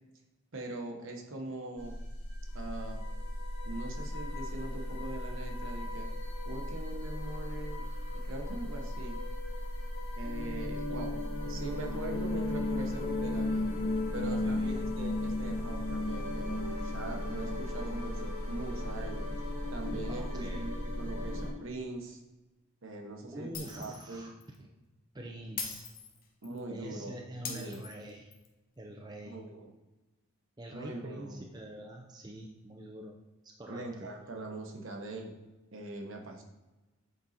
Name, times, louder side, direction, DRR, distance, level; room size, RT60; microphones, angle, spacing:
voice 1, 0.5-2.0 2.5-3.0 3.6-6.1 6.4-7.8 8.1-9.2 10.2-11.1 11.5-13.7 14.1-19.2 19.7-22.2 22.8-24.3 26.4-27.1 27.5-27.8 29.2-29.7 30.7-31.4 33.7-35.3 35.7-36.4, right 2 dB, 60° right, 2 dB, 1.1 m, -42 dB
sound 1, 1.8-21.5, left 1 dB, 75° left, 1.8 m, -35 dB
voice 2, 14.2-14.9 20.1-20.7 23.3-24.3 24.6-24.7 25.1-25.9 26.7-28.3 28.8-29.4 30.6-33.2 33.4-34.1, right 1 dB, 20° right, 1 dB, 0.5 m, -45 dB
Shatter, 23.5-24.1 24.4-24.6 25.6-26.6 27.4-28.5, left 6 dB, 40° left, 0.9 m, -41 dB
7.8 x 4.0 x 4.3 m, 1.1 s
head